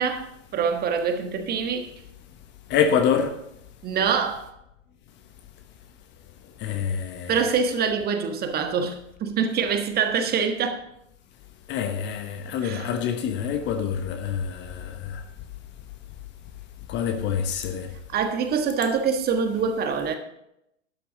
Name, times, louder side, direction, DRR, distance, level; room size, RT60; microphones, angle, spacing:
voice 1, 0.0-1.9 3.8-4.5 7.3-10.8 12.6-12.9 18.1-20.2, right 6 dB, 25° right, 1.5 m, -25 dB
voice 2, 2.7-3.3 6.6-7.4 11.7-15.2 16.9-17.9, left 7 dB, 30° left, 1.1 m, -26 dB
12.0 x 9.9 x 4.0 m
figure-of-eight pair, 105°, 38 cm